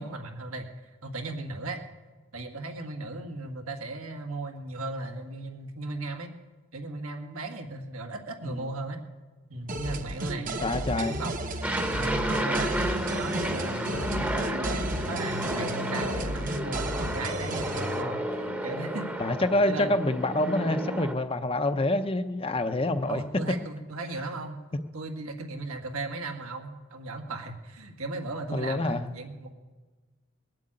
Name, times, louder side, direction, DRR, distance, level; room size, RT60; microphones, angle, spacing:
voice 1, 0.0-1.8 2.3-6.3 6.7-9.0 9.5-10.5 10.9-11.4 11.9-12.7 13.1-19.1 19.7-20.0 23.0-24.6 24.9-29.5, right 2 dB, 85° right, 4 dB, 1.9 m, -36 dB
sound 1, 9.7-18.0, right 1 dB, 40° right, 0.9 m, -33 dB
voice 2, 10.6-11.2 19.2-23.2 28.5-29.1, left 2 dB, 25° left, 9 dB, 0.6 m, -27 dB
Aircraft, 11.6-21.1, equal, 5° right, 0.9 m, -32 dB
20.5 x 7.8 x 8.8 m, 1.3 s
head